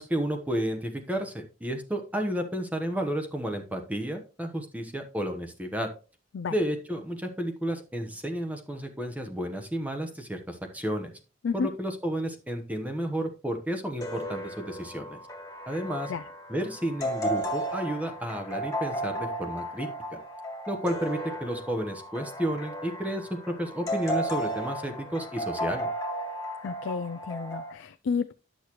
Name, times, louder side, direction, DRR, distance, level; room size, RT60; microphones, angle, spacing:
voice 1, 0.0-5.9 6.5-11.1 11.5-15.2 15.7-16.1 16.5-20.2 20.7-25.9, right 1 dB, 10° right, 1.0 m, -32 dB
sound 1, 14.0-27.7, right 1 dB, 15° left, 1.7 m, -34 dB
voice 2, 26.6-28.3, left 5 dB, 75° left, 0.4 m, -31 dB
10.0 x 6.4 x 3.0 m
head